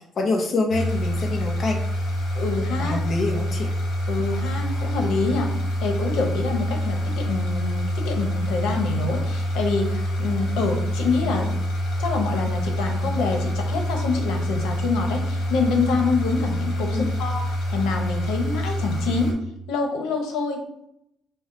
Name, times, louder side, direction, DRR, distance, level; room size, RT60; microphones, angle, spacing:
voice 1, 0.2-1.8 2.8-3.7 11.4-11.5 16.8-17.2, left 3 dB, 30° left, 1 dB, 0.5 m, -26 dB
sound 1, 0.7-19.3, equal, 60° left, 1.0 m, -26 dB
voice 2, 2.3-3.0 4.1-5.5 5.8-11.5 12.0-19.3 19.7-20.6, left 4 dB, 90° left, 3 dB, 0.9 m, -26 dB
5.5 x 2.0 x 3.8 m, 0.79 s
cardioid pair, 170°, 0 cm